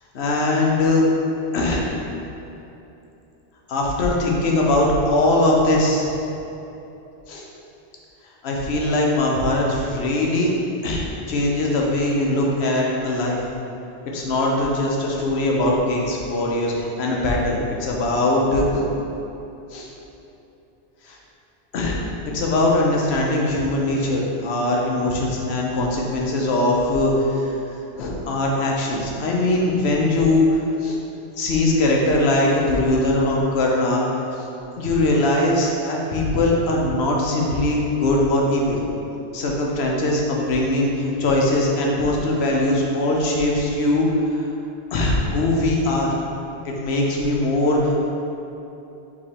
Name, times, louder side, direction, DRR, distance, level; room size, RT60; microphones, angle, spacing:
voice 1, 0.1-1.0 1.5-1.8 3.7-6.1 7.3-7.4 8.4-10.5 10.8-13.4 14.1-18.9 19.7-19.9 21.0-21.2 21.7-27.6 28.0-31.0 31.4-34.0 34.4-34.5 34.8-38.9 39.3-44.1 44.3-44.4 44.9-46.1 46.6-48.0, left 1 dB, 85° left, -2 dB, 1.0 m, -21 dB
4.8 x 3.6 x 2.8 m, 2.9 s
omnidirectional pair, 1.1 m